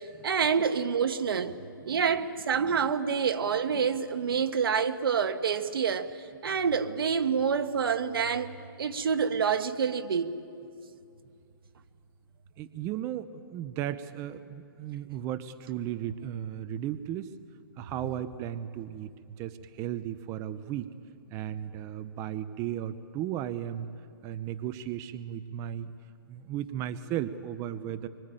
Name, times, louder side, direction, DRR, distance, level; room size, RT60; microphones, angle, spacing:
voice 1, 0.0-1.6 1.8-8.5 8.8-10.3, right 6 dB, 75° right, 1.5 m, -27 dB
voice 2, 12.6-17.3 17.8-20.9 21.3-23.9 24.2-25.9 26.3-28.1, right 11 dB, 25° right, 0.7 m, -35 dB
25.0 x 24.0 x 9.1 m
hypercardioid pair, 150°, 12 cm